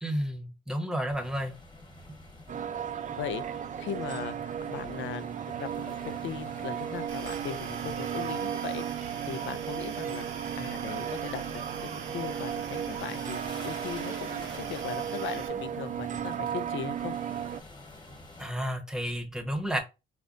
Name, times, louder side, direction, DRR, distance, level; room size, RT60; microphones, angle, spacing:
voice 1, 0.0-1.5 18.4-19.8, equal, 5° right, 0.9 m, -31 dB
sound 1, 1.1-18.5, left 2 dB, 20° left, 1.2 m, -49 dB
sound 2, 2.5-17.6, right 9 dB, 40° right, 0.4 m, -35 dB
voice 2, 3.2-8.8 9.3-10.3 10.6-17.2, left 10 dB, 75° left, 0.4 m, -39 dB
sound 3, 7.1-15.5, right 6 dB, 80° right, 0.7 m, -44 dB
5.0 x 2.1 x 2.5 m
cardioid pair, 90°, 20 cm